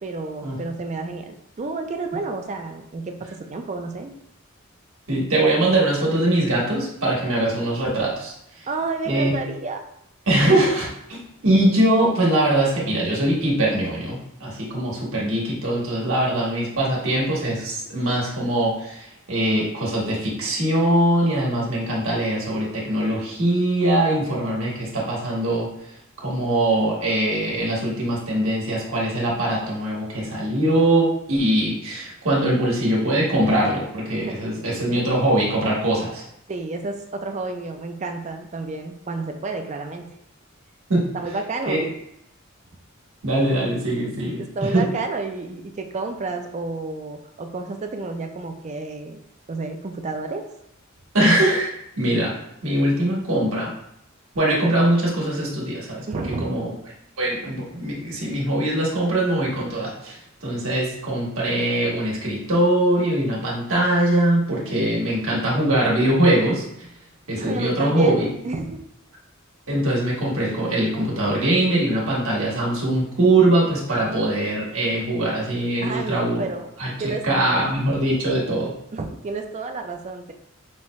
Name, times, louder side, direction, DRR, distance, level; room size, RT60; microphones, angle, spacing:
voice 1, 0.0-4.1 8.7-9.8 34.2-34.3 36.5-40.2 41.1-41.9 44.4-49.2 49.5-50.5 56.1-56.6 67.4-68.8 75.8-76.7 77.0-77.3 78.9-80.3, right 3 dB, 35° right, 5 dB, 0.4 m, -30 dB
voice 2, 5.1-8.3 9.1-9.3 10.3-11.2 11.4-25.7 26.2-36.2 40.9-41.1 41.7-41.8 43.2-44.8 51.1-51.7 52.0-52.3 52.6-53.7 54.3-56.0 56.4-56.7 57.2-66.6 67.3-68.3 69.7-76.4 76.8-78.7, right 1 dB, 80° right, -4 dB, 1.4 m, -22 dB
5.5 x 2.2 x 3.1 m, 0.78 s
head